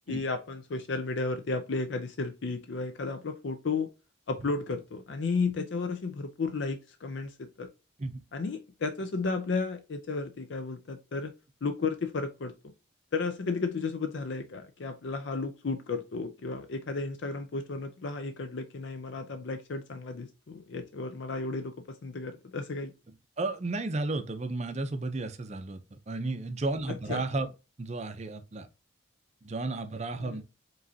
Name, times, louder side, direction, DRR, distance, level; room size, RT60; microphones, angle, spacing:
voice 1, 0.1-3.9 4.3-7.7 8.3-11.3 11.6-12.5 13.1-22.9 26.9-27.2 30.2-30.4, left 4 dB, 60° left, 0.5 m, -33 dB
voice 2, 23.4-27.5 27.8-28.7 29.4-30.4, right 2 dB, 35° right, 0.5 m, -33 dB
5.0 x 3.1 x 2.7 m
head